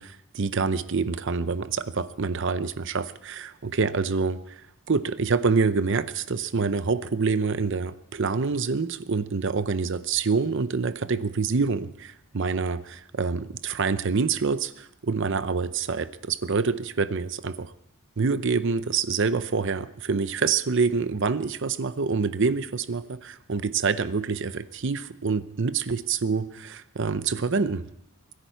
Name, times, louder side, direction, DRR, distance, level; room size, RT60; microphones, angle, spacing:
voice 1, 0.0-4.6 4.9-17.7 18.2-27.9, right 4 dB, 55° right, 14 dB, 0.6 m, -26 dB
24.5 x 10.5 x 4.6 m, 0.77 s
head